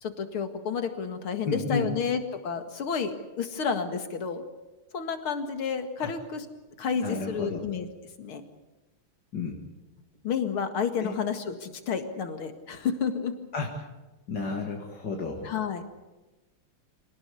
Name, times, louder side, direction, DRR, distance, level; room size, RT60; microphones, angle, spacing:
voice 1, 0.0-4.4 4.9-6.5 6.8-7.9 8.2-8.4 10.2-13.4 15.4-15.8, left 6 dB, 75° left, 7 dB, 2.8 m, -30 dB
voice 2, 1.4-1.9 6.0-6.1 7.0-7.6 9.3-9.6 11.0-11.1 13.5-13.7 14.3-15.5, left 4 dB, 55° left, 0 dB, 2.7 m, -31 dB
26.0 x 18.5 x 8.5 m, 1.1 s
omnidirectional pair, 2.3 m